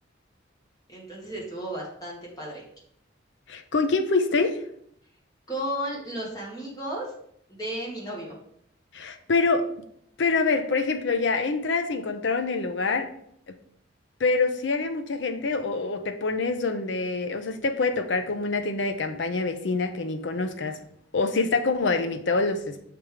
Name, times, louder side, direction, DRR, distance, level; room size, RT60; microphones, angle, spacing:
voice 1, 0.9-2.6 5.5-7.1 7.5-8.4, right 1 dB, 20° left, -3 dB, 1.6 m, -34 dB
voice 2, 3.5-4.6 8.9-9.7 10.2-13.1 14.2-20.8 21.1-22.8, left 3 dB, 65° left, 8 dB, 0.6 m, -25 dB
5.8 x 3.4 x 4.8 m, 0.69 s
head